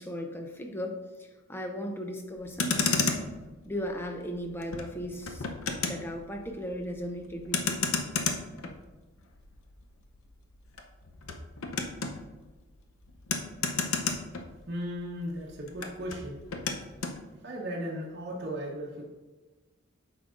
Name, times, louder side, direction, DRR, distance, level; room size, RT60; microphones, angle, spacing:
voice 1, 0.0-3.1 3.7-5.5 5.8-7.8, equal, 10° left, 3 dB, 0.6 m, -37 dB
Motor vehicle (road), 2.4-15.0 15.3-17.2, left 5 dB, 80° left, 0.7 m, -33 dB
voice 2, 14.7-16.4 17.4-19.0, equal, 50° right, -3 dB, 1.0 m, -36 dB
9.0 x 6.2 x 2.5 m, 1.2 s
head